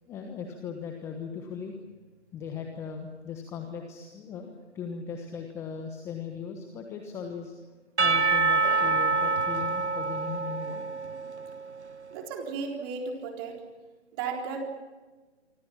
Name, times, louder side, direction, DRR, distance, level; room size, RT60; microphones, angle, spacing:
voice 1, 0.1-1.8 2.3-7.5 8.0-10.8, left 6 dB, 10° left, 4 dB, 1.2 m, -38 dB
Percussion / Church bell, 8.0-11.9, right 4 dB, 75° right, 1.4 m, -26 dB
voice 2, 12.1-13.6 14.1-14.6, right 5 dB, 20° right, 2 dB, 3.9 m, -34 dB
27.5 x 26.0 x 5.9 m, 1.3 s
figure-of-eight pair, 150°, 34 cm